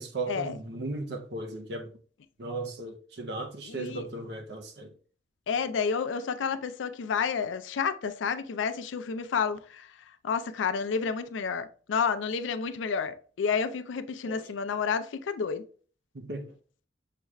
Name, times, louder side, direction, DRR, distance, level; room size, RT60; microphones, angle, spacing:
voice 1, 0.0-1.9 2.4-4.9 14.2-14.5 16.1-16.5, right 2 dB, 60° right, 0.7 m, -36 dB
voice 2, 3.7-4.0 5.5-9.9 10.2-15.6, left 6 dB, 85° left, 0.4 m, -30 dB
6.6 x 2.4 x 3.1 m
head